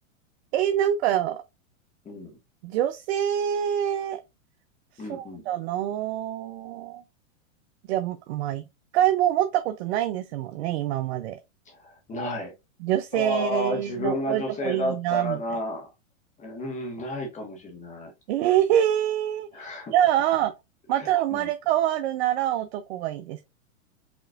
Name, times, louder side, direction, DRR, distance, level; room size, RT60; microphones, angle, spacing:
voice 1, 0.5-1.4 2.6-4.2 5.0-7.0 7.9-8.6 8.9-11.4 12.8-15.4 18.3-20.5 20.9-23.4, right 11 dB, 55° right, 0.5 m, -25 dB
voice 2, 5.0-5.5 11.8-12.5 13.1-15.9 16.4-18.1 19.5-19.9 20.9-21.5, left 1 dB, 20° left, 1.3 m, -31 dB
5.1 x 3.0 x 2.4 m
hypercardioid pair, 125°, 40 cm